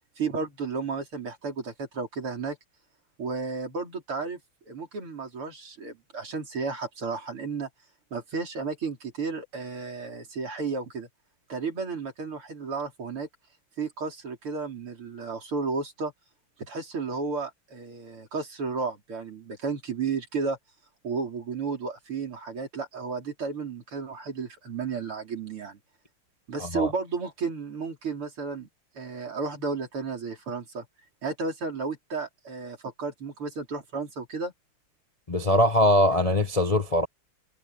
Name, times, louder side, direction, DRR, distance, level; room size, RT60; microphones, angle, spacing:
voice 1, 0.2-2.6 3.2-4.4 4.7-7.7 8.1-11.1 11.5-13.3 13.8-16.1 16.6-20.6 21.0-25.8 26.5-28.7 28.9-30.8 31.2-34.5, right 4 dB, 75° right, 5.1 m, -33 dB
voice 2, 26.6-26.9 35.3-37.1, left 1 dB, 25° left, 0.9 m, -22 dB
omnidirectional pair, 2.4 m